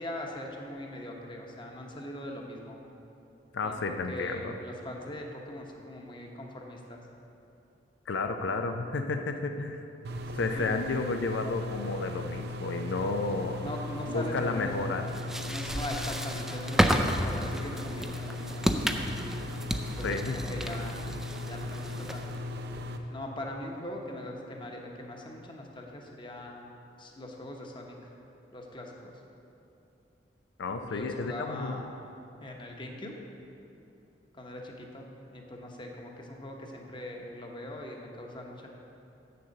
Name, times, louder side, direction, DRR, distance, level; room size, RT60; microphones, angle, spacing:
voice 1, 0.0-2.8 3.6-7.0 10.6-10.8 13.6-14.9 15.5-19.0 20.0-21.0 21.4-22.4 23.1-26.6 27.0-28.0 28.5-29.1 30.9-31.9 32.4-33.1 34.3-38.7, left 1 dB, 25° left, 1 dB, 0.9 m, -41 dB
voice 2, 3.5-4.5 8.1-9.8 10.3-13.7 14.1-15.1 20.0-20.4 30.6-31.8, left 3 dB, 85° left, 5 dB, 0.5 m, -32 dB
sound 1, 10.0-23.0, left 2 dB, 60° right, 0.6 m, -38 dB
sound 2, 15.1-22.4, equal, ahead, 0.4 m, -31 dB
7.8 x 6.8 x 6.4 m, 2.7 s
head